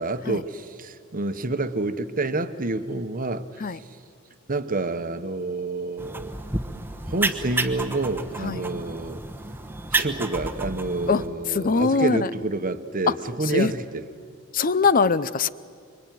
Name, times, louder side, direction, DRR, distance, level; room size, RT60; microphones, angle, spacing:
voice 1, 0.0-3.9 4.5-6.3 7.1-9.2 9.9-14.0, right 2 dB, 40° right, 10 dB, 1.1 m, -28 dB
sound 1, 6.0-11.3, right 2 dB, 10° right, 1.1 m, -30 dB
voice 2, 11.5-12.3 13.5-13.7 14.5-15.5, left 4 dB, 40° left, 17 dB, 0.6 m, -22 dB
26.0 x 24.0 x 9.3 m, 2.2 s
head